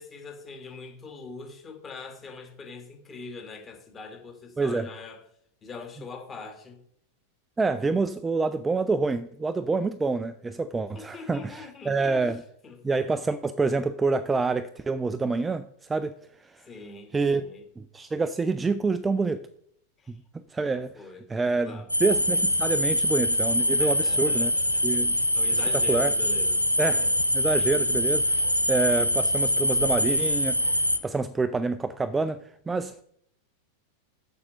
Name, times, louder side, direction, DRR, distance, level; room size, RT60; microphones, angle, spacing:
voice 1, 0.0-5.2 5.6-6.8 10.9-12.1 12.6-12.8 16.6-17.6 20.0-20.2 20.7-21.9 23.7-26.6 32.8-32.9, left 4 dB, 20° left, 2.0 m, -43 dB
voice 2, 4.6-4.9 7.6-12.4 12.8-16.7 17.1-17.4 17.8-19.5 20.5-24.5 24.8-25.2 25.5-25.6 25.9-26.1 26.8-33.0, right 3 dB, 10° right, 0.4 m, -27 dB
sound 1, 21.9-31.0, left 1 dB, 90° left, 0.8 m, -24 dB
7.1 x 6.3 x 6.5 m
figure-of-eight pair, 90°, 0 cm